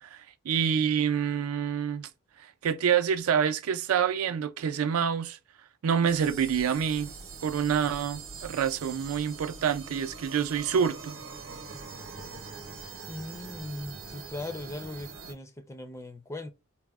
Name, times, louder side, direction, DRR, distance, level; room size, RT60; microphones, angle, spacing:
voice 1, 0.0-2.1 2.6-5.4 5.8-7.1 7.4-11.1, right 7 dB, 85° right, 0.4 m, -27 dB
sound 1, 6.0-15.3, right 4 dB, 70° right, 0.8 m, -43 dB
voice 2, 13.1-16.5, left 2 dB, 15° left, 0.4 m, -39 dB
4.1 x 2.0 x 2.3 m
head